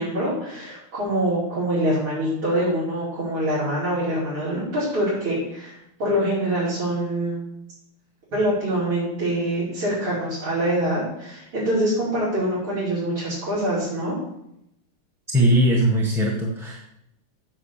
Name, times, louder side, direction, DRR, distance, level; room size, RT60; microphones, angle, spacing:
voice 1, 0.0-7.4 8.3-14.2, right 1 dB, 75° right, -12 dB, 6.1 m, -25 dB
voice 2, 15.3-16.8, right 1 dB, ahead, -2 dB, 1.3 m, -19 dB
9.1 x 6.6 x 7.6 m, 0.78 s
omnidirectional pair, 2.4 m